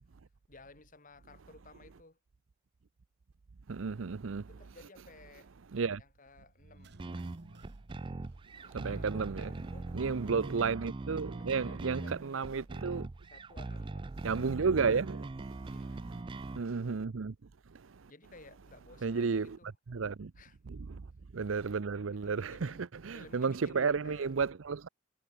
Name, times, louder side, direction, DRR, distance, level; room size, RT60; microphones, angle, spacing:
voice 1, 0.5-2.2 4.5-5.6 6.0-6.9 8.6-10.0 11.3-12.7 13.3-14.1 15.7-16.4 18.1-19.7 20.4-20.6 22.2-22.9 23.1-24.3, left 3 dB, 40° left, 2.4 m, -56 dB
voice 2, 3.7-4.5 5.7-6.0 8.7-9.5 9.9-13.1 14.2-15.7 16.3-17.4 17.7-18.1 19.0-19.6 19.9-20.3 20.7-21.1 21.3-24.9, right 5 dB, 90° right, 0.6 m, -33 dB
sound 1, 6.5-9.4 9.7-9.8, right 2 dB, 60° right, 1.4 m, -57 dB
sound 2, 7.0-16.6, right 2 dB, 25° right, 0.4 m, -41 dB
head